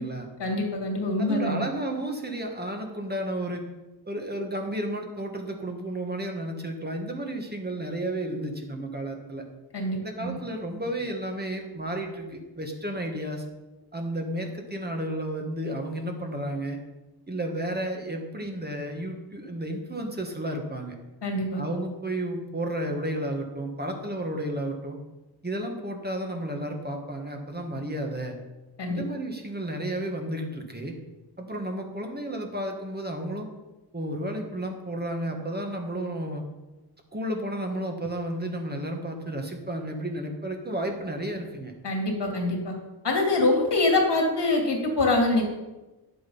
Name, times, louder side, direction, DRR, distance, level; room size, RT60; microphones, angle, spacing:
voice 1, 0.4-1.6 9.7-10.4 21.2-21.6 28.8-29.0 41.8-42.7 43.0-45.4, left 2 dB, 75° left, 1 dB, 2.7 m, -25 dB
voice 2, 1.2-3.7 4.1-9.4 10.0-13.4 13.9-16.8 17.3-20.9 21.6-25.0 25.4-28.4 28.9-30.9 31.4-33.5 33.9-36.4 37.1-41.7, right 1 dB, 25° right, 2 dB, 1.7 m, -32 dB
9.9 x 7.7 x 5.6 m, 1.1 s
wide cardioid pair, 95°, 42 cm